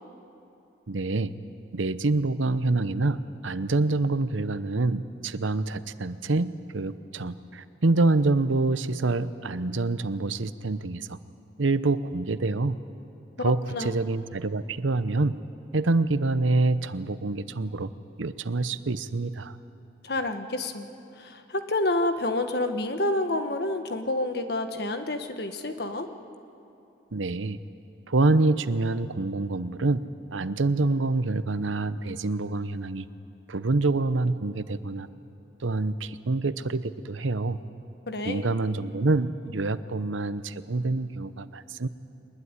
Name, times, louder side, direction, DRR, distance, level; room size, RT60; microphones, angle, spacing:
voice 1, 0.9-1.3 1.7-11.2 11.6-12.8 13.4-15.4 15.7-17.9 18.2-19.5 27.1-27.6 28.1-30.0 30.3-33.1 33.5-35.1 35.6-37.6 38.3-41.9, right 2 dB, 90° right, 13 dB, 0.9 m, -26 dB
voice 2, 13.4-13.9 20.0-20.9 21.2-26.1 38.1-38.4, left 2 dB, 55° left, 7 dB, 1.4 m, -29 dB
23.5 x 20.5 x 9.7 m, 2.7 s
head